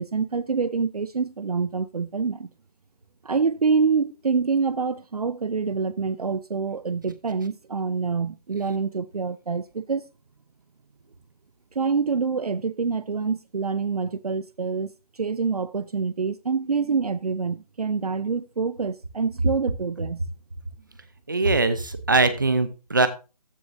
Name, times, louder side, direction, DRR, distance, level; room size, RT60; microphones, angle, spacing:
voice 1, 0.0-2.5 3.2-10.1 11.7-20.2, right 5 dB, 65° right, 0.5 m, -26 dB
voice 2, 21.3-23.1, right 3 dB, 30° right, 0.8 m, -21 dB
14.5 x 6.4 x 2.7 m
figure-of-eight pair, 175°, 21 cm